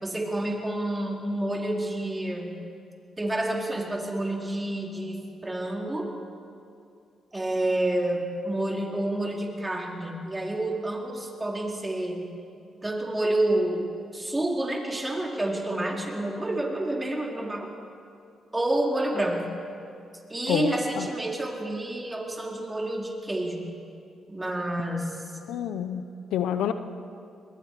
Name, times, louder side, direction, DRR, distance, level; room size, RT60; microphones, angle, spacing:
voice 1, 0.0-2.6 3.2-6.1 7.3-12.3 12.8-17.7 18.5-19.5 20.3-23.7 24.3-25.1, right 1 dB, 20° right, 0 dB, 4.3 m, -29 dB
voice 2, 20.5-21.1 25.5-26.7, left 9 dB, 75° left, 10 dB, 0.8 m, -28 dB
25.5 x 21.0 x 5.0 m, 2.5 s
hypercardioid pair, 45°, 0 cm